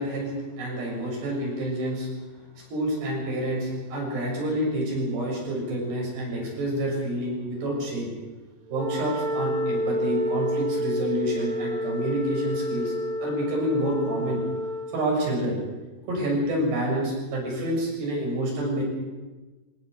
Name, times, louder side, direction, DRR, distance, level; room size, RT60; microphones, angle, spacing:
voice 1, 0.0-2.1 2.6-8.1 8.7-12.9 13.2-14.4 14.9-15.6 16.1-18.8, right 1 dB, 80° right, -2 dB, 9.1 m, -28 dB
Wind instrument woodwind instrument, 8.7-15.0, equal, 60° right, 3.4 m, -29 dB
22.0 x 18.5 x 8.3 m, 1.2 s
omnidirectional pair, 4.8 m